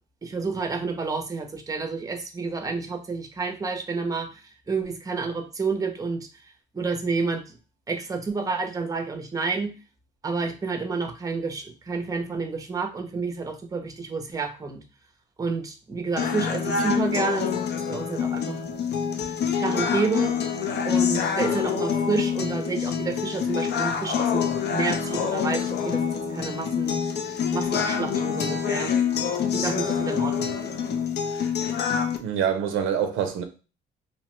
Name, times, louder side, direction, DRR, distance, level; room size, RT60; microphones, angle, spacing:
voice 1, 0.2-6.3 6.7-7.6 7.9-9.7 10.2-14.8 15.4-17.5 17.9-18.6 19.6-20.3 20.8-27.0 27.5-28.9 29.5-30.7, right 4 dB, 15° right, 0.6 m, -29 dB
sound 1, 16.2-32.2, left 7 dB, 55° left, 0.5 m, -26 dB
voice 2, 32.2-33.4, right 8 dB, 90° right, 0.5 m, -25 dB
2.8 x 2.1 x 2.9 m
cardioid pair, 90°, 20 cm